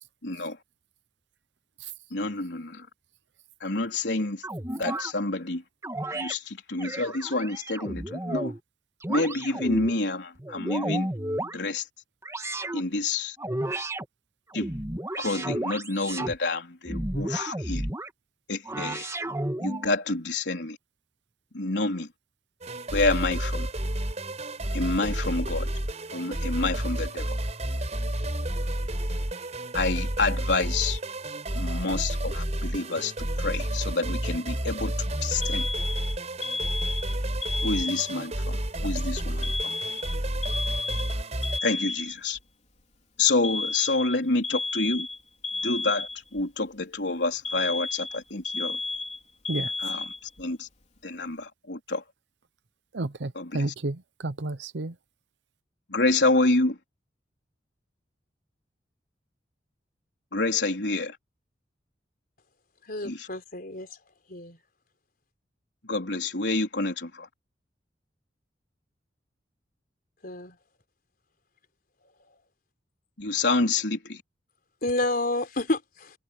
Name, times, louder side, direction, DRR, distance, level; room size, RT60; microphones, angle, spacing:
voice 1, 0.2-0.6 2.1-2.9 3.6-4.4 4.7-5.6 6.1-8.5 9.1-11.1 11.4-11.9 12.7-13.4 14.5-14.7 15.2-17.9 18.5-19.1 19.6-20.8 21.5-22.1 22.9-23.7 24.7-25.7 26.1-27.4 29.7-31.0 31.6-35.7 37.6-38.6 38.8-39.7 41.6-42.4 43.2-45.1 45.6-48.8 49.8-50.7 51.0-52.0 53.3-53.6 55.9-56.8 60.3-61.2 63.0-63.3 65.8-67.3 73.2-74.2, left 3 dB, 80° left, 3.9 m, -28 dB
sound 1, 4.4-5.1 5.8-6.3 6.8-8.6 9.0-9.9 10.4-11.6 12.2-12.8 13.4-14.0 14.5-16.4 16.9-18.1 18.6-19.9, right 1 dB, 15° right, 1.8 m, -32 dB
sound 2, 22.6-41.6, right 1 dB, 40° right, 4.6 m, -30 dB
Alarm, 35.4-38.4 39.4-42.4 43.4-46.4 47.4-50.4, left 3 dB, 40° left, 3.8 m, -32 dB
voice 2, 52.9-54.9, right 2 dB, 80° right, 0.8 m, -31 dB
voice 3, 62.9-63.9 64.3-64.6 70.2-70.6 74.8-76.1, left 2 dB, 55° left, 4.1 m, -29 dB
head